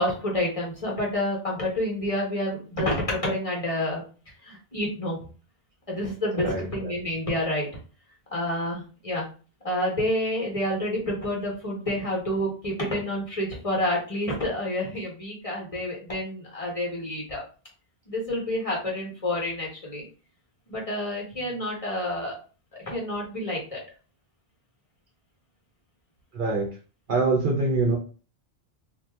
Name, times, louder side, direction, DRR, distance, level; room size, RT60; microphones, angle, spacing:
voice 1, 0.0-4.0 4.4-5.3 5.9-7.7 8.3-9.3 9.6-17.4 18.1-20.1 20.7-22.3 22.8-23.8, left 1 dB, 35° left, -2 dB, 1.0 m, -28 dB
voice 2, 6.3-6.9 26.3-26.7 27.1-28.0, right 3 dB, 55° right, 1 dB, 0.7 m, -24 dB
2.7 x 2.2 x 3.3 m, 0.37 s
omnidirectional pair, 1.1 m